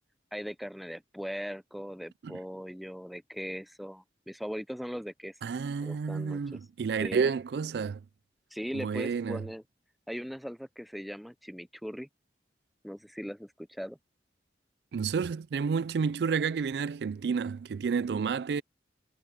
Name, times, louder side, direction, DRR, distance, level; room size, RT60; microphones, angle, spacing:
voice 1, 0.3-5.3 5.8-6.6 7.0-7.3 8.5-9.6 10.1-12.1 12.8-14.0, equal, ahead, 0.5 m, -39 dB
voice 2, 5.4-8.0 8.7-9.4 14.9-18.6, right 5 dB, 70° right, 0.3 m, -30 dB
head